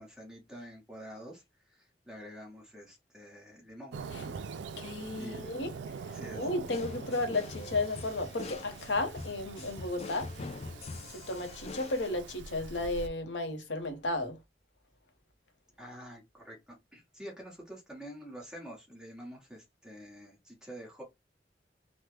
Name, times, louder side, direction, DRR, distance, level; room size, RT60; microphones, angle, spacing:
voice 1, 0.0-4.0 4.3-4.4 5.2-5.5 6.1-6.5 15.8-21.0, equal, 5° right, 1.0 m, -48 dB
Fireworks, 3.9-13.1, right 5 dB, 85° right, 0.4 m, -44 dB
voice 2, 4.8-5.7 6.3-10.3 11.3-14.4, left 2 dB, 90° left, 0.8 m, -33 dB
sound 1, 6.7-12.1, left 3 dB, 35° left, 0.3 m, -44 dB
3.1 x 2.1 x 3.1 m
head